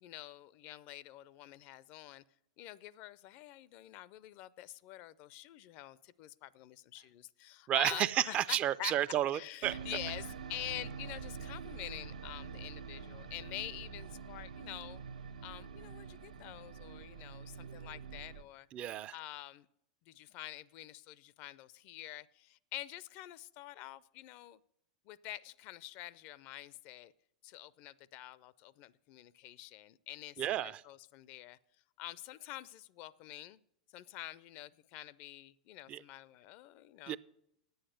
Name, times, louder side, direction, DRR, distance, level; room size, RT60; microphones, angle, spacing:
voice 1, 0.0-2.2 2.6-8.9 9.3-15.0 15.4-18.7 19.1-19.7 20.1-24.6 25.1-27.1 27.4-31.6 32.0-33.6 33.9-37.2, left 15 dB, 50° left, 0.4 m, -47 dB
voice 2, 7.7-9.8 18.7-19.1 30.4-30.8 35.9-36.0 37.1-37.2, right 12 dB, 35° right, 0.4 m, -32 dB
sound 1, 9.6-18.4, right 6 dB, 85° right, 0.8 m, -46 dB
9.9 x 8.0 x 6.4 m
hypercardioid pair, 100°, 4 cm